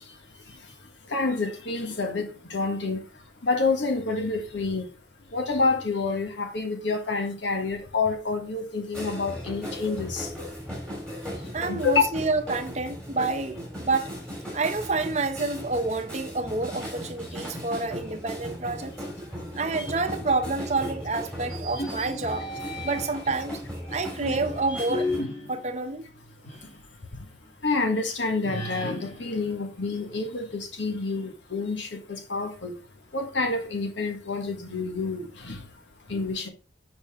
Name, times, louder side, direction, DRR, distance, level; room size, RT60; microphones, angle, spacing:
voice 1, 1.1-3.0 3.4-4.8 5.3-10.5 11.7-12.0 27.6-32.7 33.1-35.6 36.1-36.5, left 4 dB, 80° left, 1.4 m, -28 dB
sound 1, 8.9-25.2, equal, 5° left, 2.7 m, -37 dB
voice 2, 11.5-14.1 14.5-18.9 19.5-22.5 22.8-23.6 23.9-25.1 25.5-26.1, right 3 dB, 35° right, 0.7 m, -28 dB
sound 2, 21.4-23.3 23.9-26.8 27.2-27.3 28.4-30.5, left 1 dB, 40° left, 2.6 m, -35 dB
7.0 x 5.2 x 3.5 m
head